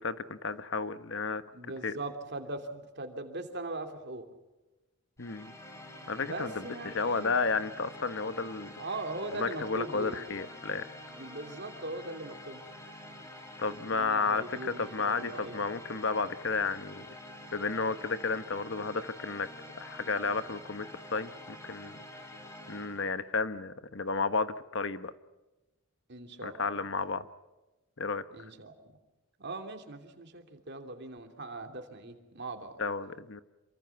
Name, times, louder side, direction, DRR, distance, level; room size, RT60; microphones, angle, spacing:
voice 1, 0.0-1.4 1.8-1.9 5.2-5.5 6.1-6.5 6.8-8.7 9.4-10.9 13.6-17.1 17.5-19.5 19.8-22.0 22.7-25.1 26.4-27.3 28.0-28.2 32.8-33.4, left 4 dB, 55° left, 12 dB, 1.1 m, -32 dB
voice 2, 1.5-4.2 6.2-7.4 8.8-10.4 11.1-12.6 13.9-15.6 26.1-26.8 28.3-28.8 29.4-32.8, right 2 dB, 50° right, 5 dB, 3.0 m, -40 dB
sound 1, 5.2-23.1, left 1 dB, 15° left, 4.0 m, -48 dB
28.0 x 24.0 x 5.9 m, 1.1 s
head